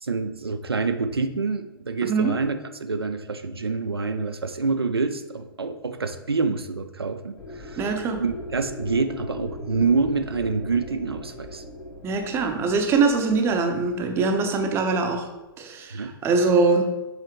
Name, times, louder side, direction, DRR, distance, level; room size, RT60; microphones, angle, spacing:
voice 1, 0.0-2.5 2.8-11.6 15.9-16.1, right 4 dB, 85° right, 7 dB, 0.5 m, -27 dB
voice 2, 2.0-2.3 7.8-8.2 12.0-15.2 15.6-16.8, right 4 dB, 20° right, 4 dB, 0.7 m, -22 dB
sound 1, 7.4-15.5, left 1 dB, 80° left, 1.5 m, -40 dB
7.7 x 4.1 x 3.0 m, 1.0 s
figure-of-eight pair, 115°, 13 cm